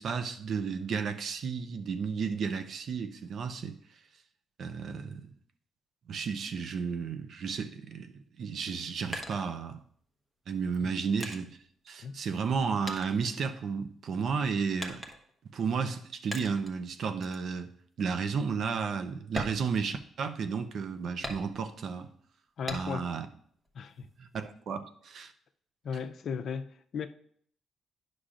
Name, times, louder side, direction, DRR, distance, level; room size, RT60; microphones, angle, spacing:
voice 1, 0.0-3.7 4.6-5.3 6.1-9.8 10.5-11.6 11.9-15.0 15.5-17.7 18.0-22.1 22.7-23.3 24.2-25.3, right 5 dB, 60° right, 0.6 m, -33 dB
sound 1, 8.6-10.1 10.7-12.6 12.9-14.0 14.8-15.5 16.3-16.8 17.2-17.5 17.9-18.0 18.5-18.6 19.2-20.4 21.2-21.9 22.7-23.2 23.6-24.5, equal, 20° right, 1.1 m, -42 dB
voice 2, 22.6-23.1 23.7-24.1 25.8-27.1, left 6 dB, 60° left, 0.5 m, -36 dB
9.9 x 6.2 x 2.5 m
cardioid pair, 90°, 0 cm